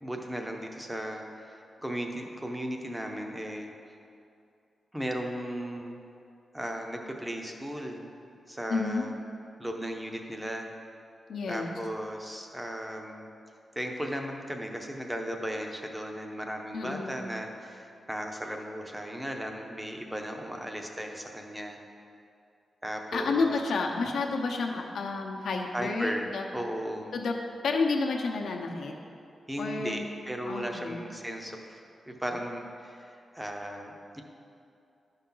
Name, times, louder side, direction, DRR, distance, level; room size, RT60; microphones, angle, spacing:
voice 1, 0.0-3.7 4.9-6.0 6.5-8.1 8.5-9.1 9.6-10.7 11.5-13.3 13.8-21.8 22.8-23.5 25.7-27.1 29.5-34.2, equal, 5° right, 3 dB, 0.6 m, -36 dB
voice 2, 8.7-9.1 11.3-11.7 16.7-17.2 23.1-26.5 27.1-27.3 27.6-28.9 29.6-30.0 30.5-31.0, left 4 dB, 75° left, 1 dB, 0.8 m, -30 dB
11.5 x 5.7 x 3.8 m, 2.5 s
wide cardioid pair, 170°, 0 cm